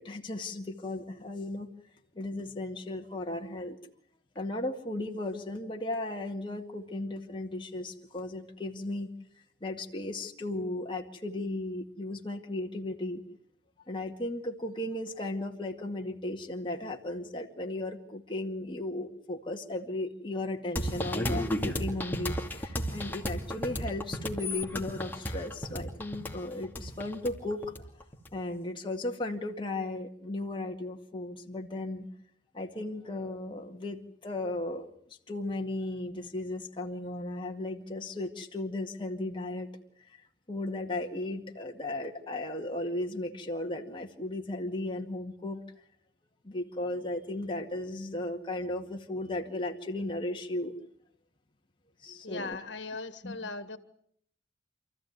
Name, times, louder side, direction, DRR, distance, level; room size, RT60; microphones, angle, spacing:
voice 1, 0.0-1.7 2.2-3.8 4.4-9.1 9.6-13.2 13.9-27.7 28.3-32.1 32.5-34.9 35.3-39.7 40.5-45.6 46.4-50.8 52.0-52.6 53.2-53.4, left 2 dB, 25° left, 1 dB, 2.1 m, -35 dB
sound 1, 20.8-28.3, equal, 10° left, 2.5 m, -33 dB
voice 2, 52.2-53.8, left 3 dB, 70° left, 11 dB, 1.9 m, -38 dB
28.0 x 15.0 x 9.5 m, 0.67 s
head